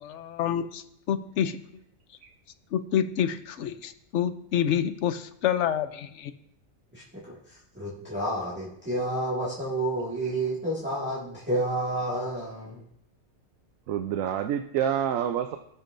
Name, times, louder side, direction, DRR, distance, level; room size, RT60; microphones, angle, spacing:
voice 1, 0.0-1.6 2.7-6.3, left 9 dB, 65° left, 10 dB, 1.0 m, -28 dB
voice 2, 6.9-7.3 7.7-12.8, right 1 dB, 10° right, -9 dB, 1.9 m, -30 dB
voice 3, 13.9-15.6, right 9 dB, 80° right, 6 dB, 1.0 m, -27 dB
17.5 x 7.0 x 2.6 m, 0.74 s
omnidirectional pair, 1.4 m